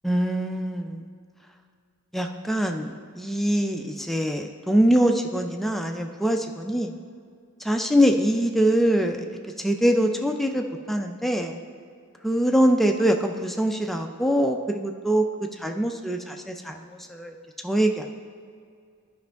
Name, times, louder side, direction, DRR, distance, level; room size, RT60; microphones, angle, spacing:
voice 1, 0.0-1.1 2.1-7.0 7.6-9.3 9.6-11.6 12.2-15.3 15.6-17.3 17.6-18.1, equal, ahead, 3 dB, 0.4 m, -23 dB
11.5 x 5.3 x 3.4 m, 2.2 s
head